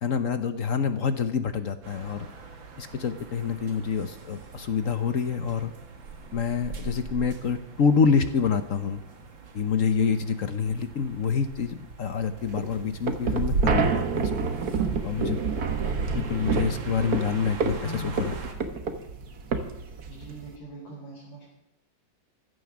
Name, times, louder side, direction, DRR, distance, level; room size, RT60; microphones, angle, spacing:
voice 1, 0.0-2.3 2.8-5.7 6.3-9.0 9.5-14.3 15.0-15.7 16.1-18.3, left 6 dB, 50° left, 9 dB, 1.1 m, -27 dB
sound 1, 1.8-18.5, right 3 dB, 85° right, 2.6 m, -38 dB
sound 2, 12.4-20.6, right 5 dB, 55° right, 1.7 m, -29 dB
voice 2, 17.8-18.5 20.1-21.5, right 1 dB, 80° left, -4 dB, 4.9 m, -41 dB
15.5 x 12.0 x 6.1 m, 0.82 s
omnidirectional pair, 2.0 m